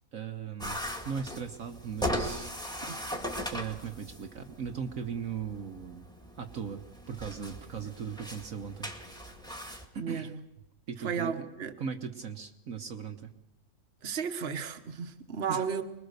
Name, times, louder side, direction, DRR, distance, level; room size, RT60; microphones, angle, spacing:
voice 1, 0.1-0.8 1.0-2.5 3.5-6.1 6.4-8.9 9.9-10.3 10.9-11.5 11.8-13.3 15.5-15.6, right 7 dB, 60° right, 5 dB, 1.5 m, -38 dB
sound 1, 0.6-9.9, equal, 5° left, 1.8 m, -39 dB
voice 2, 10.0-10.4 11.0-11.8 14.0-15.8, right 6 dB, 45° right, 7 dB, 1.4 m, -34 dB
25.5 x 21.0 x 6.7 m, 0.95 s
omnidirectional pair, 1.6 m